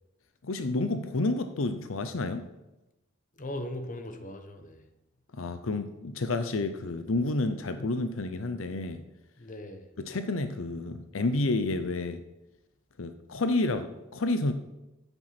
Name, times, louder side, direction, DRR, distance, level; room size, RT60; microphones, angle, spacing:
voice 1, 0.4-2.5 5.3-9.0 10.0-12.2 13.0-14.5, left 2 dB, 80° left, 9 dB, 0.7 m, -30 dB
voice 2, 3.3-4.9 9.4-9.9, left 1 dB, 40° left, 7 dB, 1.2 m, -39 dB
11.5 x 9.1 x 6.0 m, 1.0 s
head